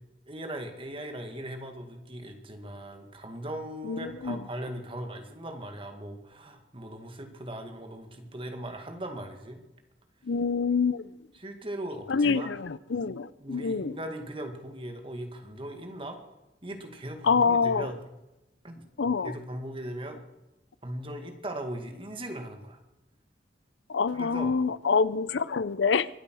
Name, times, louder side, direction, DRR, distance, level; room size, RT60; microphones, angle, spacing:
voice 1, 0.3-9.6 11.3-12.5 13.4-16.2 16.6-18.0 18.6-20.2 20.8-22.8 24.1-24.6, right 1 dB, 30° right, 2.0 m, -39 dB
voice 2, 3.8-4.4 10.3-11.1 12.1-14.0 17.2-17.9 19.0-19.3 23.9-26.1, left 5 dB, 85° left, 0.6 m, -26 dB
24.0 x 8.6 x 6.2 m
head